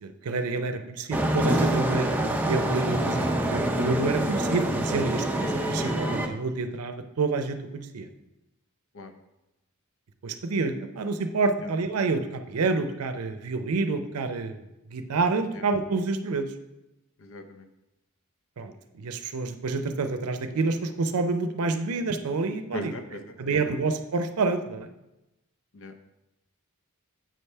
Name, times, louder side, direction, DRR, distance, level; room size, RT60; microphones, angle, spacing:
voice 1, 0.0-8.1 10.2-14.6 14.9-16.5 18.6-22.9 23.4-24.9, right 3 dB, 85° right, 8 dB, 0.5 m, -28 dB
sound 1, 1.1-6.3, right 1 dB, 10° right, 0.5 m, -26 dB
voice 2, 17.2-17.7 22.7-23.8 25.7-25.9, left 1 dB, 65° left, 8 dB, 0.7 m, -39 dB
7.6 x 3.3 x 5.4 m, 0.94 s
head